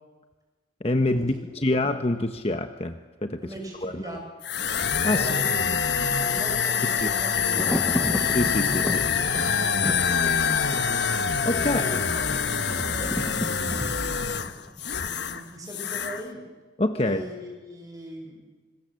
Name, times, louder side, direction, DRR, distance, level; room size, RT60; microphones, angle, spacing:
voice 1, 0.8-3.4 3.8-4.1 5.0-5.3 7.0-7.1 8.3-9.1 11.4-12.0 16.8-17.3, left 1 dB, 30° left, 7 dB, 1.1 m, -26 dB
voice 2, 3.4-4.2 5.1-5.6 6.2-7.9 10.1-10.4 11.6-12.4 12.9-14.3 15.0-16.4 16.9-18.4, right 1 dB, 20° right, 1 dB, 7.4 m, -40 dB
sound 1, 4.4-15.4 15.7-16.2, left 6 dB, 65° left, 1.4 m, -25 dB
Thunder, 4.6-15.5 15.8-15.9, equal, 10° left, 1.0 m, -35 dB
26.5 x 26.0 x 7.8 m, 1.3 s
head